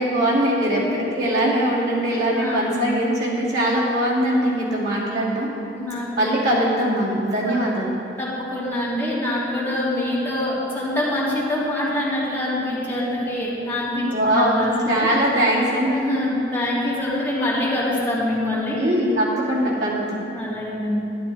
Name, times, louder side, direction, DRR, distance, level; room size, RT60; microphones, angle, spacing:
voice 1, 0.0-5.5 6.2-8.0 14.1-16.0 18.7-20.2, right 1 dB, 65° right, -7 dB, 2.7 m, -21 dB
voice 2, 2.3-2.8 5.7-6.5 7.4-7.5 8.2-15.1 15.9-18.8 20.3-21.0, left 1 dB, 10° left, -9 dB, 2.8 m, -25 dB
12.5 x 11.5 x 4.2 m, 2.9 s
head